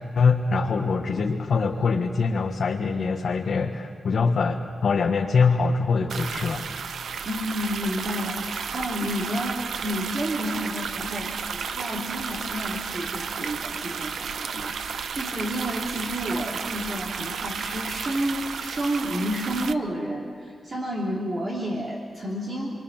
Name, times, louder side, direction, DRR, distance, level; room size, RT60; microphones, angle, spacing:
voice 1, 0.1-6.6, left 4 dB, 60° left, 0 dB, 1.4 m, -23 dB
sound 1, 6.1-19.7, right 6 dB, 90° right, 0.8 m, -33 dB
voice 2, 7.2-22.8, equal, 35° right, -3 dB, 3.0 m, -30 dB
29.5 x 23.5 x 7.4 m, 2.2 s
wide cardioid pair, 170°, 0 cm